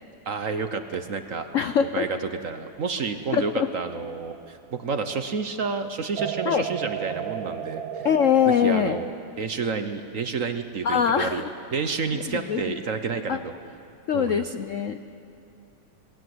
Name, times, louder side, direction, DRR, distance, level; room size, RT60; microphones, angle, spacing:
voice 1, 0.3-1.5 1.9-2.2 2.4-8.1 8.5-9.1 9.4-13.6 14.1-14.4, right 5 dB, 50° right, 8 dB, 1.1 m, -30 dB
voice 2, 1.5-2.0 3.3-3.7 6.4-6.6 8.0-9.0 10.8-11.5 12.1-12.8 13.3-13.4 14.1-15.0, left 8 dB, 85° left, 9 dB, 0.7 m, -23 dB
sound 1, 3.3-5.1 6.2-9.0, right 8 dB, 75° right, 1.6 m, -34 dB
27.0 x 20.0 x 7.9 m, 2.7 s
omnidirectional pair, 2.2 m